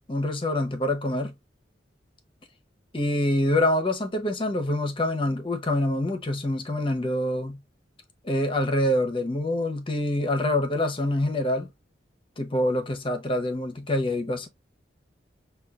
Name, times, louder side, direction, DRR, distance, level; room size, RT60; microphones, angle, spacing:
voice 1, 0.0-1.3 2.9-7.6 8.2-11.7 12.4-14.5, left 1 dB, 30° left, 0.6 m, -26 dB
6.5 x 2.3 x 2.3 m
head